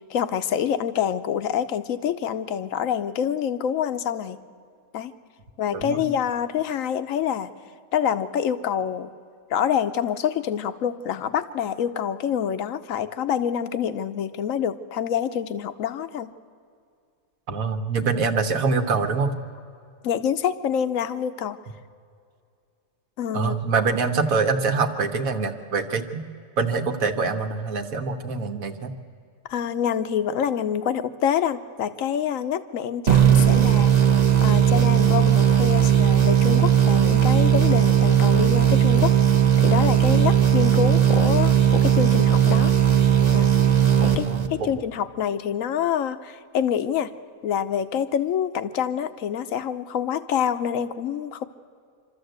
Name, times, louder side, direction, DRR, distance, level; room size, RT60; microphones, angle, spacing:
voice 1, 0.1-4.4 4.9-5.1 5.6-7.5 7.9-9.1 9.5-16.3 20.0-21.6 23.2-23.6 29.5-33.9 34.4-39.1 39.6-42.7 43.3-43.5 44.0-44.2 44.5-47.1 47.4-51.4, left 8 dB, 70° left, 11 dB, 1.1 m, -26 dB
voice 2, 17.5-19.3 23.3-26.2 26.6-28.9 44.0-44.7, right 4 dB, 70° right, 6 dB, 1.6 m, -25 dB
sound 1, 33.1-44.8, right 10 dB, 30° right, 1.0 m, -18 dB
25.5 x 13.5 x 8.0 m, 2.3 s
omnidirectional pair, 1.5 m